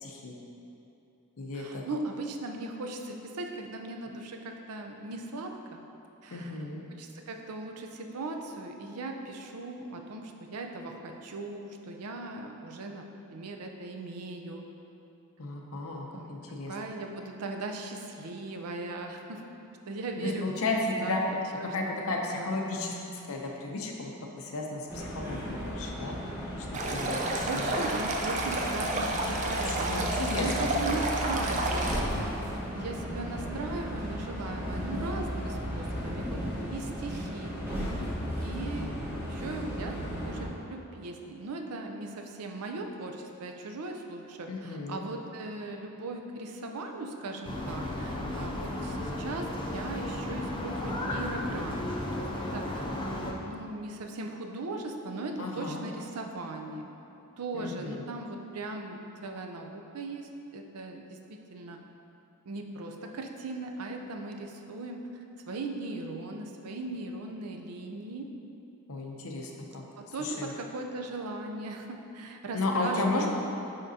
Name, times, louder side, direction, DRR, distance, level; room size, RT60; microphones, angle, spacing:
voice 1, 0.0-0.3 1.4-1.8 6.3-6.8 15.4-16.7 20.2-21.2 21.7-26.2 26.6-27.8 29.6-30.7 44.5-45.0 55.4-55.9 57.5-58.0 68.9-69.8 70.2-70.5 72.5-73.3, left 2 dB, 65° left, 1 dB, 0.6 m, -34 dB
voice 2, 1.5-5.8 6.2-6.5 6.9-14.6 16.1-16.4 16.7-19.4 19.9-20.5 20.7-21.7 22.4-22.5 27.4-32.3 32.7-36.4 36.7-37.5 38.4-39.0 39.3-40.0 40.2-51.8 52.2-52.9 53.2-56.9 57.4-61.8 62.5-65.0 65.5-68.3 70.0-73.3, right 2 dB, 80° right, 3 dB, 0.5 m, -38 dB
sound 1, 24.9-40.4, equal, 10° right, 1.4 m, -35 dB
Stream, 26.7-32.0, right 1 dB, 35° right, 0.5 m, -30 dB
sound 2, 47.4-53.3, left 1 dB, 20° left, 0.5 m, -34 dB
9.8 x 3.7 x 2.7 m, 2.8 s
head